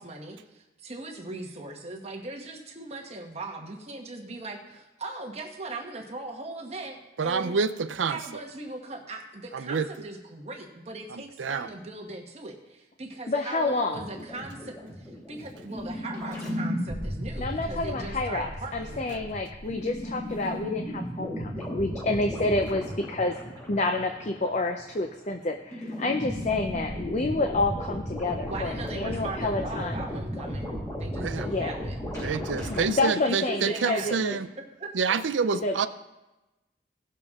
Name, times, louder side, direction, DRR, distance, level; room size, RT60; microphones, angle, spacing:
voice 1, 0.0-7.6 8.1-19.3 28.5-30.7 31.0-32.0 32.6-32.7 33.2-34.4 34.8-34.9, right 2 dB, 35° right, 1 dB, 1.2 m, -39 dB
voice 2, 7.2-8.2 9.5-9.9 11.1-11.7 31.2-31.5 32.2-34.5 34.9-35.9, right 5 dB, 90° right, 14 dB, 0.5 m, -28 dB
voice 3, 13.3-14.0 17.4-23.4 23.7-30.0 31.5-31.8 32.7-34.3 35.5-35.9, left 2 dB, 40° left, 4 dB, 0.6 m, -29 dB
sound 1, 13.9-25.3 25.7-32.9, equal, 20° left, 2.7 m, -35 dB
17.0 x 6.6 x 3.6 m, 1.0 s
head